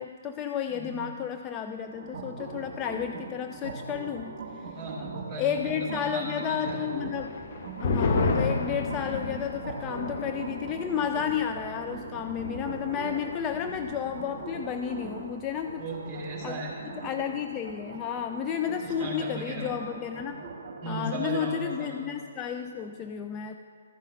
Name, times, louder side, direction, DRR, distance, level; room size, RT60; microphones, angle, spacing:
voice 1, 0.0-4.8 5.3-7.4 7.8-15.9 16.4-16.6 16.9-20.5 20.9-23.5, left 8 dB, 20° left, 5 dB, 0.3 m, -32 dB
voice 2, 0.7-1.1 4.7-6.9 15.8-16.7 18.7-19.7 20.8-22.0, right 2 dB, 15° right, -3 dB, 3.2 m, -36 dB
sound 1, 1.9-21.2, right 4 dB, 40° right, 1.5 m, -41 dB
sound 2, 7.2-14.2 14.5-14.6 14.9-15.4, left 3 dB, 50° left, 0.7 m, -32 dB
13.0 x 5.6 x 6.0 m, 2.2 s
figure-of-eight pair, 130°, 0 cm